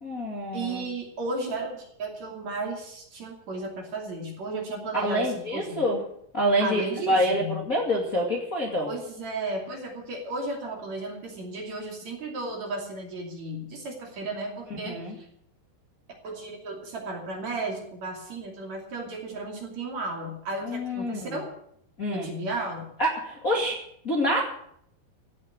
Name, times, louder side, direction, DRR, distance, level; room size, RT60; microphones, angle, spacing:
voice 1, 0.0-0.9 5.0-6.0 6.3-8.9 14.9-15.1 20.6-21.4 22.0-22.3 23.0-23.8 24.0-24.5, equal, 30° left, -2 dB, 2.0 m, -26 dB
voice 2, 0.5-5.8 6.6-7.7 8.8-15.3 16.2-21.5 22.1-22.9, right 2 dB, 50° right, 1 dB, 3.7 m, -34 dB
16.0 x 7.2 x 9.1 m, 0.71 s
omnidirectional pair, 4.4 m